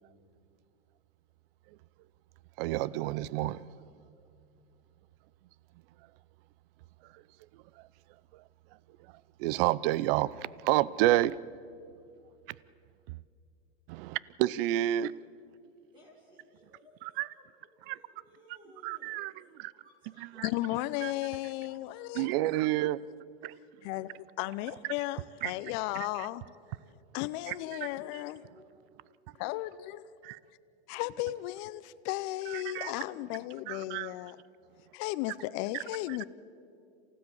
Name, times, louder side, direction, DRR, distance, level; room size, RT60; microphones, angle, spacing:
voice 1, 2.6-3.7 7.1-7.2 7.8-7.9 8.3-8.4 9.4-11.4 12.5-12.6 13.1-13.2 13.9-15.1 17.2-17.3 17.9-18.0 18.8-19.3 19.6-19.7 20.4-20.5 21.0-21.1 22.2-23.0 23.4-23.5 25.4-25.5 26.2-26.3 27.5-27.6 30.2-30.4 32.5-32.9 33.7-34.1 36.1-36.2, right 15 dB, 60° right, 0.7 m, -29 dB
voice 2, 14.8-15.3 15.9-17.1 17.3-17.5 17.8-19.4 19.7-20.8 21.6-22.1 22.7-22.8 27.1-29.0 31.0-31.1, equal, 15° right, 6.2 m, -59 dB
voice 3, 20.4-22.3 23.8-26.4 27.1-28.4 29.4-30.1 30.9-34.4 34.9-36.2, left 17 dB, 50° left, 0.8 m, -35 dB
28.0 x 16.0 x 7.1 m
hypercardioid pair, 110°, 33 cm